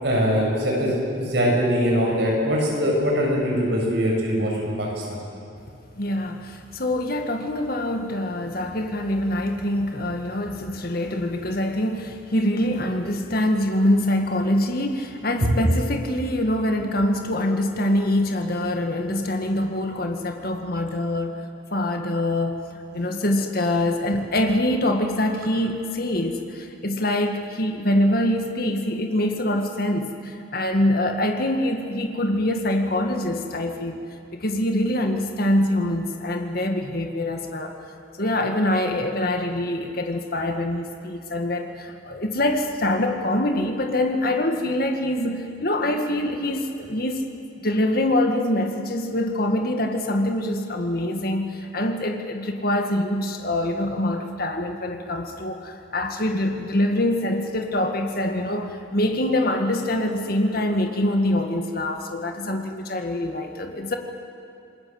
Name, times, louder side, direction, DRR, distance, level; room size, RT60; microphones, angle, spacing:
voice 1, 0.0-5.2 15.4-15.5, equal, 60° right, -2 dB, 7.3 m, -22 dB
voice 2, 6.0-21.4 21.7-22.6 22.9-34.0 34.3-37.7 38.2-47.3 47.6-64.0, left 1 dB, 50° left, 4 dB, 2.0 m, -24 dB
28.0 x 20.5 x 8.0 m, 2.8 s
head